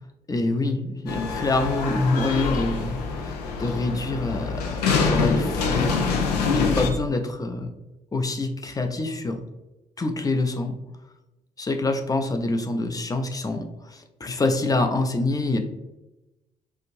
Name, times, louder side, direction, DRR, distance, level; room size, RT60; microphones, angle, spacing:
voice 1, 0.3-6.0 6.5-7.7 8.1-9.4 10.0-10.8 11.6-15.6, left 2 dB, 15° left, 6 dB, 0.4 m, -26 dB
sound 1, 1.1-6.9, left 4 dB, 75° left, 0.4 m, -25 dB
3.4 x 2.5 x 3.0 m, 1.0 s
figure-of-eight pair, 40°, 21 cm